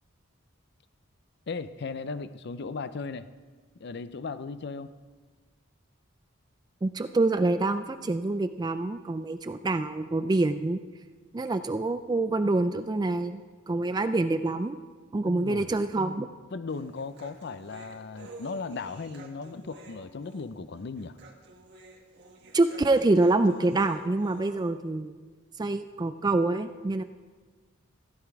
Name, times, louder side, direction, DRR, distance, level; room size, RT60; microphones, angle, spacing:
voice 1, 1.5-3.3 3.8-4.9 15.3-15.7 16.5-21.2, left 4 dB, 55° left, 13 dB, 0.5 m, -37 dB
voice 2, 6.8-10.8 11.3-14.8 15.1-16.3 22.5-25.2 25.6-27.0, right 2 dB, 20° right, 10 dB, 0.3 m, -26 dB
Human voice, 16.7-24.7, right 2 dB, 55° right, 1.6 m, -50 dB
15.0 x 10.5 x 4.7 m, 1.4 s
head